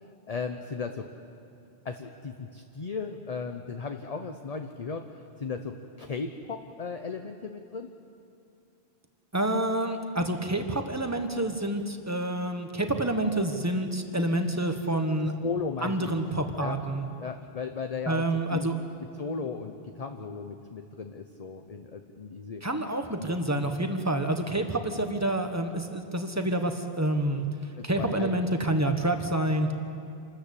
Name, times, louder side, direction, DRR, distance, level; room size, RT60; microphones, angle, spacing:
voice 1, 0.3-1.1 1.8-5.1 5.4-7.9 15.2-16.1 16.6-16.8 17.2-18.2 18.5-18.7 19.2-22.6 23.6-23.7 27.8-28.5, left 5 dB, 40° left, 5 dB, 0.9 m, -36 dB
voice 2, 9.3-15.3 15.8-17.1 18.1-18.7 22.6-29.7, right 1 dB, 15° right, 6 dB, 1.3 m, -28 dB
27.0 x 13.5 x 8.5 m, 2.5 s
omnidirectional pair, 1.1 m